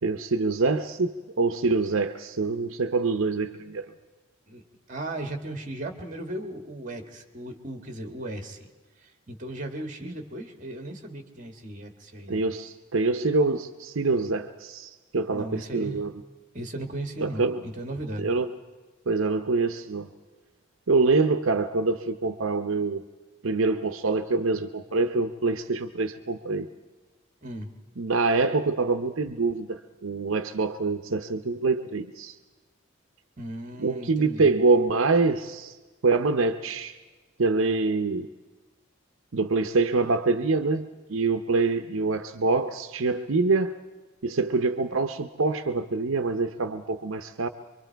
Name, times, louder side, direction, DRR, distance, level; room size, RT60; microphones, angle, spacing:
voice 1, 0.0-3.9 12.3-16.1 17.2-17.6 18.2-18.5 19.1-20.1 20.9-23.0 23.4-26.7 28.0-32.4 33.8-35.8 36.0-37.0 37.4-38.3 39.3-43.8 44.2-47.5, right 3 dB, 70° right, 9 dB, 0.7 m, -25 dB
voice 2, 4.9-8.7 9.0-12.4 15.3-16.0 16.5-18.3 27.4-27.7 33.4-34.5, right 1 dB, 35° right, 5 dB, 1.7 m, -36 dB
25.0 x 24.0 x 4.6 m, 1.3 s
head